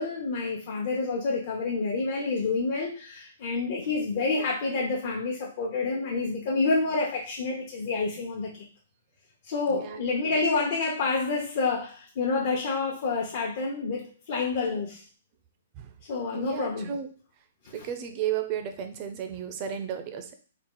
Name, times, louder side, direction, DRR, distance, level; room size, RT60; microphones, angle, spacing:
voice 1, 0.0-8.6 9.4-15.0 16.1-16.9, left 3 dB, 50° left, -3 dB, 0.9 m, -28 dB
voice 2, 9.7-10.4 15.8-15.9 16.3-17.1 17.7-20.3, right 9 dB, 35° right, 8 dB, 0.5 m, -34 dB
3.8 x 2.4 x 3.8 m, 0.40 s
hypercardioid pair, 145°, 0 cm